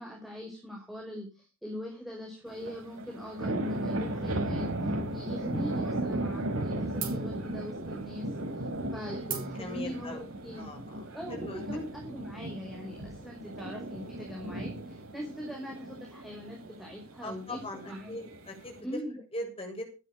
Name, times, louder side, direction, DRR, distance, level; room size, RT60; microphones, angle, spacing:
voice 1, 0.0-8.3 8.9-10.7 11.1-18.2 18.8-19.2, equal, ahead, 0 dB, 5.2 m, -41 dB
sound 1, 2.5-18.8, right 1 dB, 70° right, 5.1 m, -36 dB
sound 2, 5.8-5.9 6.2-6.6 7.0-12.1, right 7 dB, 40° right, 5.5 m, -43 dB
voice 2, 9.6-10.8 11.3-11.6 17.2-18.8 19.3-19.8, left 1 dB, 25° left, 3 dB, 7.1 m, -40 dB
16.0 x 12.5 x 5.2 m, 0.33 s
head